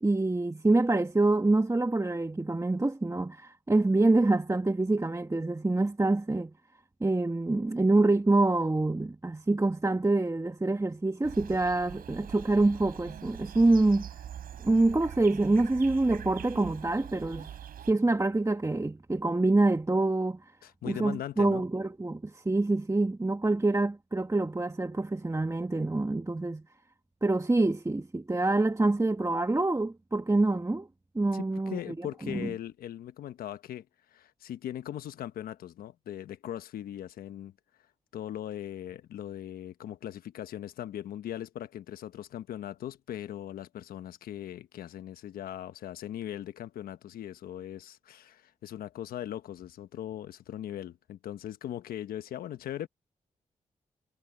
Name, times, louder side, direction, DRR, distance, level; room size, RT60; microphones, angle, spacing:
voice 1, 0.0-6.5 7.0-14.1 14.6-17.5 17.9-20.4 20.8-26.6 27.2-30.9 31.1-31.8 32.2-32.5, right 2 dB, 20° right, 1.2 m, -26 dB
sound 1, 11.2-17.9, right 9 dB, 80° right, 5.5 m, -43 dB
voice 2, 20.6-21.6 31.3-33.9 34.1-37.5 38.1-52.9, left 11 dB, 85° left, 1.1 m, -39 dB
supercardioid pair, 45°, 15 cm